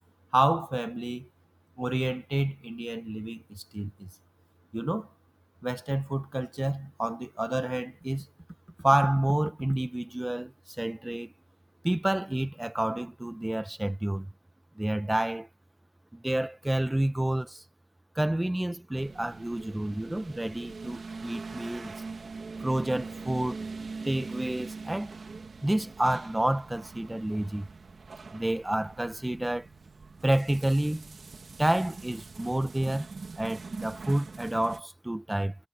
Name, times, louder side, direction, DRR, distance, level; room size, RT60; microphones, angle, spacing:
voice 1, 0.3-1.3 1.8-4.1 4.7-5.1 5.6-8.3 8.8-10.5 10.8-11.3 11.8-14.3 14.7-15.5 16.1-17.6 18.1-21.9 22.6-23.6 24.0-25.1 25.6-27.7 28.3-29.7 30.2-31.0 31.6-33.1 33.4-35.6, right 1 dB, 15° right, 1.1 m, -29 dB
sound 1, 19.0-34.8, right 4 dB, 90° right, 2.3 m, -43 dB
wide cardioid pair, 90°, 0 cm